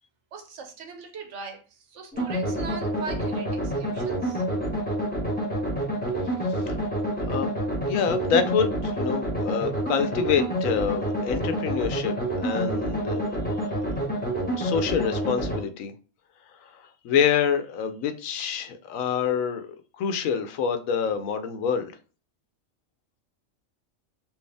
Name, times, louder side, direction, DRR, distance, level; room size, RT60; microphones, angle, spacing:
voice 1, 0.3-4.4, right 4 dB, 65° right, 1.1 m, -40 dB
sound 1, 2.1-15.6, right 1 dB, 5° left, 1.1 m, -28 dB
voice 2, 7.9-13.4 14.4-15.9 17.0-21.9, left 7 dB, 80° left, 1.0 m, -26 dB
4.5 x 2.7 x 3.3 m
omnidirectional pair, 1.4 m